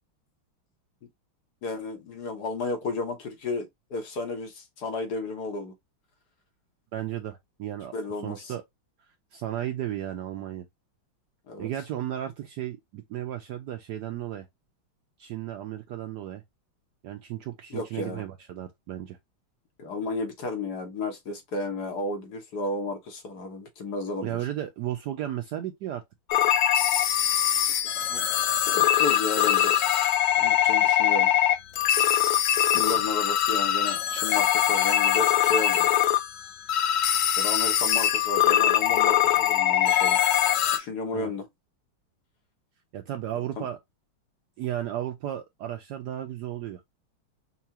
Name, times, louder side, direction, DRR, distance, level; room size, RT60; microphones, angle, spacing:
voice 1, 1.6-5.7 7.9-8.5 11.5-11.7 17.7-18.2 19.8-24.4 28.1-29.7 30.4-31.3 32.7-35.9 37.4-40.2 40.7-41.5 43.6-43.7, left 3 dB, 60° left, 1.3 m, -33 dB
voice 2, 6.9-7.9 8.2-8.6 9.3-10.7 11.6-14.5 15.2-16.4 17.0-19.2 24.2-26.0 27.5-27.7 32.7-33.0 41.1-41.3 42.9-43.8 44.6-46.8, right 12 dB, 75° right, 1.0 m, -34 dB
sound 1, 26.3-40.8, left 11 dB, 85° left, 0.8 m, -22 dB
5.7 x 2.3 x 2.8 m
omnidirectional pair, 2.2 m